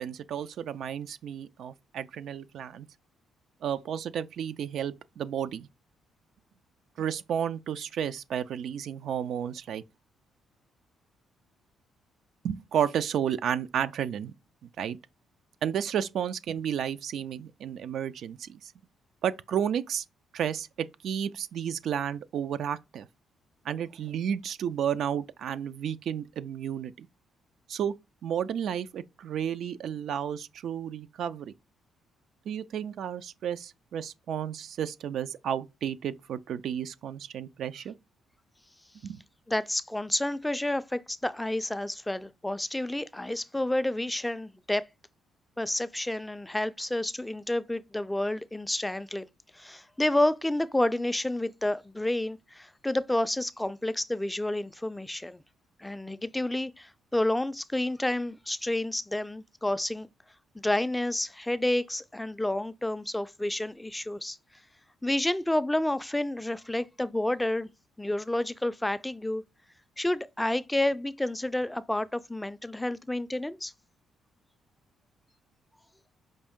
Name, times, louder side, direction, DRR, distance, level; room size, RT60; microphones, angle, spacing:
voice 1, 0.0-2.9 3.6-5.7 7.0-9.8 12.4-14.3 14.8-15.0 15.6-18.7 19.2-20.0 20.3-23.1 23.6-27.1 27.7-28.0 28.2-31.5 32.5-37.9 39.0-39.2, right 9 dB, 70° right, 0.3 m, -32 dB
voice 2, 39.5-44.8 45.6-49.3 49.5-55.4 55.8-60.1 60.6-64.4 65.0-67.7 68.0-69.4 70.0-73.7, left 1 dB, 10° left, 0.3 m, -30 dB
5.2 x 2.5 x 3.6 m
cardioid pair, 90°, 0 cm